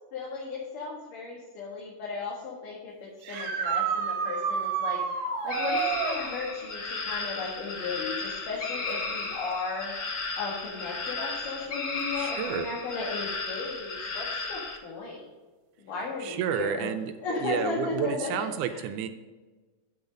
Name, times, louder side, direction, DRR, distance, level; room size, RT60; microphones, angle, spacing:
voice 1, 0.1-15.2 15.9-16.9 17.2-18.8, left 4 dB, 85° left, -4 dB, 3.4 m, -35 dB
sound 1, 3.2-6.2 9.5-9.6 11.7-11.8 18.0-18.1, right 6 dB, 65° right, 2.2 m, -29 dB
sound 2, 5.5-14.8, left 3 dB, 50° left, 1.1 m, -34 dB
voice 2, 12.2-12.7 16.2-17.1 17.4-19.1, right 9 dB, 80° right, 9 dB, 2.0 m, -30 dB
9.6 x 8.0 x 5.2 m, 1.3 s
omnidirectional pair, 3.6 m